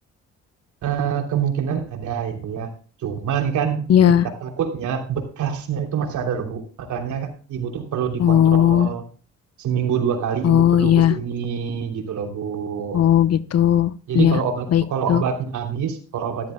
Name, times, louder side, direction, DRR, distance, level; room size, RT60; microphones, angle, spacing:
voice 1, 0.8-2.7 3.0-3.9 4.4-9.0 9.6-13.0 14.1-16.5, right 7 dB, 75° right, 3 dB, 3.1 m, -26 dB
voice 2, 3.9-4.3 8.2-8.9 10.4-11.1 12.9-14.4 14.7-14.8 15.1-15.2, left 10 dB, 55° left, 15 dB, 0.9 m, -16 dB
13.5 x 13.5 x 2.2 m, 0.38 s
cardioid pair, 90°, 30 cm